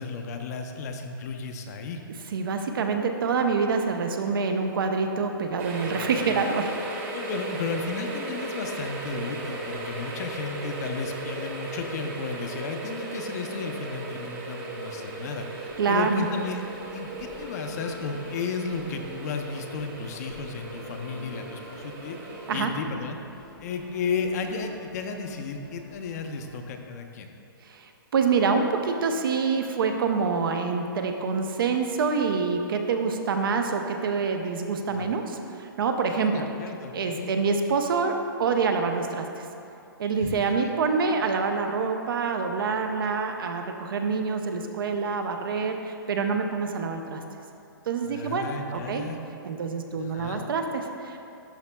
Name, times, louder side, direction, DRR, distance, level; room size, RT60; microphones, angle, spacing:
voice 1, 0.0-2.0 5.8-6.4 7.1-16.6 16.9-23.2 23.6-27.3 34.9-35.1 36.1-37.3 40.2-40.7 48.0-49.2 49.9-50.4, left 4 dB, 45° left, 5 dB, 0.6 m, -34 dB
voice 2, 2.3-6.8 15.8-16.3 22.5-22.7 27.6-36.5 36.9-39.4 40.0-47.2 47.9-49.1 49.4-51.2, right 5 dB, 70° right, 5 dB, 0.6 m, -26 dB
sound 1, 5.6-22.6, right 2 dB, 35° right, 1.1 m, -36 dB
sound 2, 15.7-26.7, left 1 dB, 5° left, 0.8 m, -48 dB
11.5 x 5.0 x 2.2 m, 2.7 s
hypercardioid pair, 145°, 12 cm